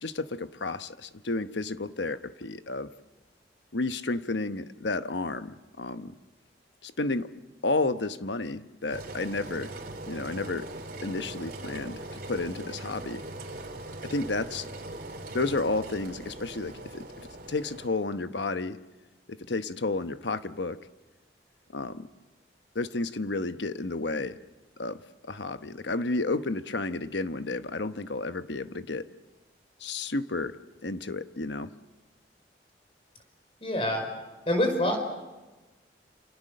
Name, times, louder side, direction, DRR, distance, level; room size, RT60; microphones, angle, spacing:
voice 1, 0.0-2.9 3.7-6.1 6.8-7.3 7.6-9.7 10.1-10.7 11.0-13.2 14.0-14.7 15.3-18.8 19.3-20.8 21.7-22.1 22.7-24.4 24.8-29.1 29.8-30.6 30.8-31.7, left 3 dB, 80° left, 11 dB, 1.0 m, -31 dB
Engine, 8.9-17.9, right 2 dB, 50° right, 3.1 m, -41 dB
voice 2, 33.6-34.0 34.5-35.0, left 1 dB, 30° left, 4 dB, 5.1 m, -25 dB
28.5 x 27.5 x 6.7 m, 1.2 s
head